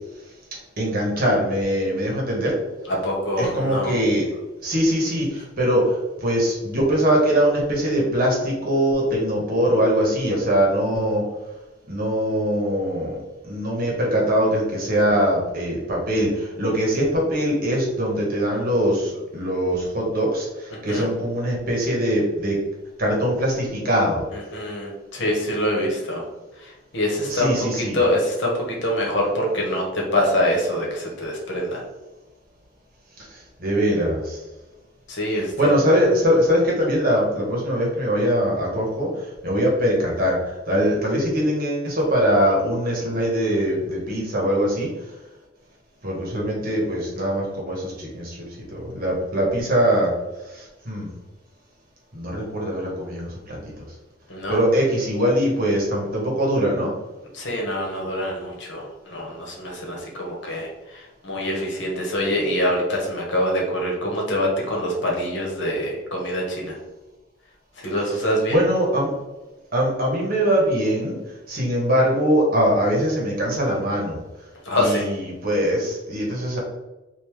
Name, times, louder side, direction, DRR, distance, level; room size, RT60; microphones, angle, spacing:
voice 1, 0.8-2.6 3.4-4.3 4.6-11.2 11.9-22.6 23.0-24.3 27.3-28.0 33.2-34.4 35.3-45.1 46.0-51.1 52.1-53.9 54.5-56.9 68.5-69.1 69.7-76.6, equal, 50° right, -3 dB, 1.2 m, -22 dB
voice 2, 2.9-4.0 20.7-21.1 24.3-26.3 26.6-27.5 27.9-31.8 35.1-35.7 54.3-54.6 57.3-66.8 67.8-68.6 74.6-75.1, left 1 dB, 70° left, -1 dB, 1.1 m, -25 dB
3.5 x 2.6 x 3.1 m, 1.1 s
head